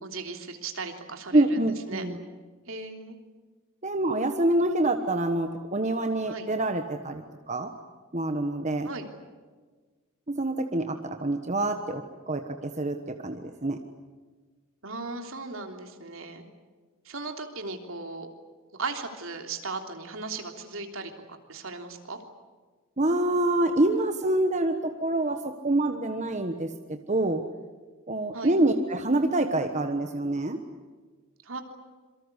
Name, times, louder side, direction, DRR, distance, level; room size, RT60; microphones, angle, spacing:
voice 1, 0.0-2.1 2.7-3.2 6.3-6.5 8.8-9.1 14.8-16.4 17.0-18.3 18.7-22.2 28.3-28.6 31.4-31.6, right 3 dB, 65° right, 4 dB, 3.3 m, -37 dB
voice 2, 1.3-2.2 3.8-7.7 8.1-8.9 10.3-13.8 23.0-27.4 28.1-30.6, right 1 dB, 35° right, 6 dB, 1.4 m, -26 dB
27.0 x 24.0 x 8.3 m, 1.4 s
head